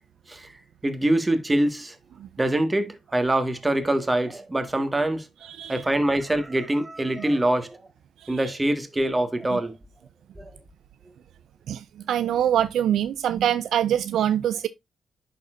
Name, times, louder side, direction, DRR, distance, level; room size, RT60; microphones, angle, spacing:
voice 1, 0.8-1.9 2.4-5.2 5.7-7.8 8.3-9.7 10.4-10.5, right 1 dB, 20° right, 1.5 m, -24 dB
voice 2, 5.4-5.8 8.2-8.5 9.5-9.6 11.7-14.7, right 10 dB, 75° right, 0.3 m, -24 dB
11.0 x 4.2 x 2.5 m
supercardioid pair, 50°, 0 cm